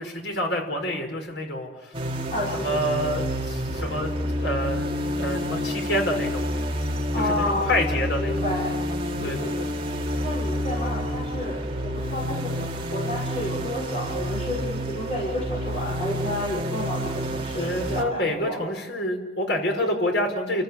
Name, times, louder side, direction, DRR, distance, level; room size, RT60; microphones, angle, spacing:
voice 1, 0.0-1.9 2.6-6.5 7.2-8.4 9.2-9.7 17.6-20.6, left 1 dB, 85° left, 3 dB, 5.4 m, -28 dB
sound 1, 1.9-18.0, equal, 30° right, 2.4 m, -29 dB
voice 2, 2.3-2.7 3.7-3.9 7.1-7.7 8.2-8.8 9.2-9.4 10.2-18.6, left 1 dB, 40° left, -4 dB, 5.4 m, -31 dB
30.0 x 14.5 x 9.9 m, 1.0 s
head